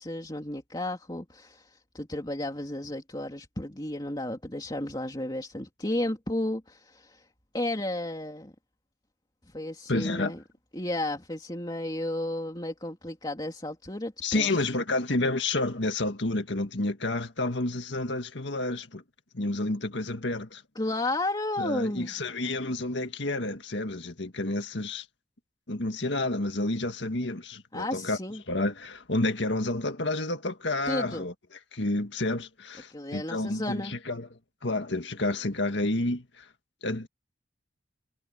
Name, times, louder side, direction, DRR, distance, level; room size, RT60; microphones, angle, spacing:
voice 1, 0.0-7.3 7.5-8.5 9.5-10.4 10.7-14.7 20.7-22.1 27.7-28.4 30.9-31.3 32.9-34.0, left 1 dB, 20° left, 3.1 m, -33 dB
voice 2, 9.9-10.3 14.2-19.0 19.3-20.6 21.6-25.1 25.7-28.2 28.5-31.3 31.7-34.3 34.6-36.5 36.8-37.1, left 2 dB, 65° left, 1.9 m, -30 dB
head